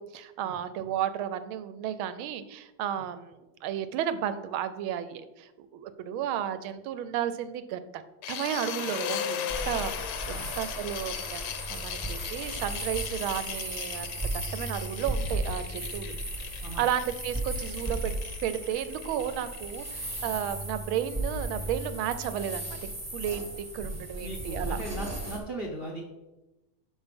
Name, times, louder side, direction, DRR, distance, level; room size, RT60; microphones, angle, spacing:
voice 1, 0.0-8.0 8.3-16.1 16.8-18.1 18.4-22.8 23.1-24.8, right 10 dB, 75° right, 12 dB, 1.4 m, -33 dB
sound 1, 8.2-20.2, left 9 dB, 85° left, 1.6 m, -38 dB
sound 2, 9.5-25.4, right 1 dB, 10° right, 0.7 m, -36 dB
voice 2, 10.3-10.6 16.6-16.8 23.8-26.0, right 1 dB, 55° right, 0 dB, 0.6 m, -39 dB
6.3 x 5.8 x 5.1 m, 1.0 s
omnidirectional pair, 2.4 m